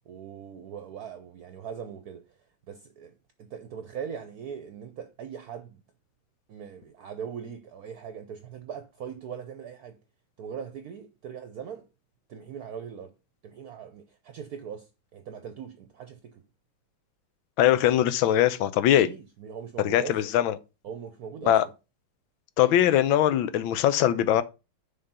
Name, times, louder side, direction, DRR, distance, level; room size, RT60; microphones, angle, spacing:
voice 1, 0.1-2.2 2.7-3.1 3.4-5.8 6.5-10.0 10.4-11.9 12.3-13.1 13.4-16.4 19.0-20.1 20.8-21.6, right 7 dB, 65° right, 1.0 m, -40 dB
voice 2, 17.6-19.1 19.8-20.5 21.4-21.6 22.6-24.4, left 11 dB, 85° left, 1.5 m, -21 dB
6.6 x 3.8 x 5.4 m
omnidirectional pair, 2.1 m